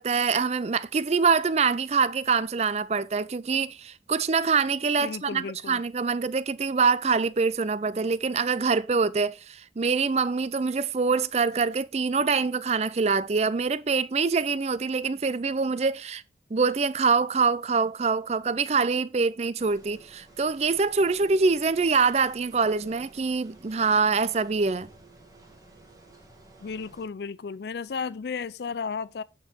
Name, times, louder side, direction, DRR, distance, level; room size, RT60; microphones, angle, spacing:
voice 1, 0.0-16.2 16.5-24.9, right 5 dB, 35° right, 0.4 m, -25 dB
voice 2, 5.0-5.8 26.6-29.2, left 5 dB, 65° left, 0.4 m, -34 dB
sound 1, 19.6-27.1, right 2 dB, 20° right, 2.2 m, -53 dB
9.2 x 6.0 x 4.4 m
head